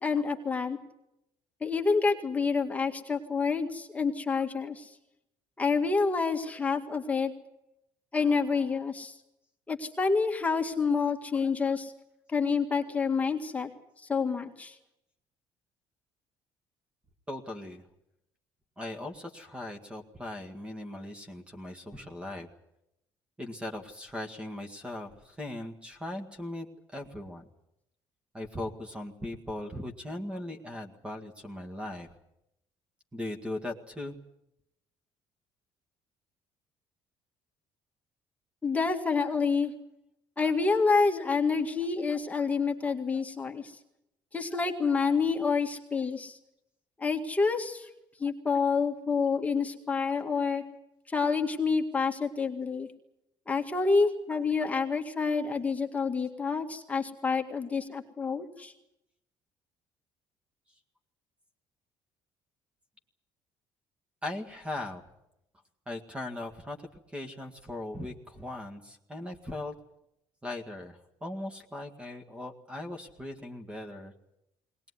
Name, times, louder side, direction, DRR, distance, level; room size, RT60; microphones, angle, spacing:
voice 1, 0.0-0.8 1.6-4.9 5.6-7.3 8.1-9.1 9.7-11.9 12.3-13.7 14.1-14.8 38.6-39.7 40.4-43.7 44.3-46.4 47.0-47.9 48.2-50.6 51.1-52.9 53.5-58.7, left 4 dB, 15° left, 2 dB, 1.9 m, -28 dB
voice 2, 17.3-17.8 18.8-22.5 23.4-26.7 26.9-27.4 28.3-32.1 33.1-34.2 64.2-65.0 65.9-66.8 67.1-69.7 70.4-74.1, left 1 dB, 10° right, 6 dB, 1.9 m, -39 dB
21.0 x 19.5 x 9.7 m, 0.83 s
cardioid pair, 150°, 10 cm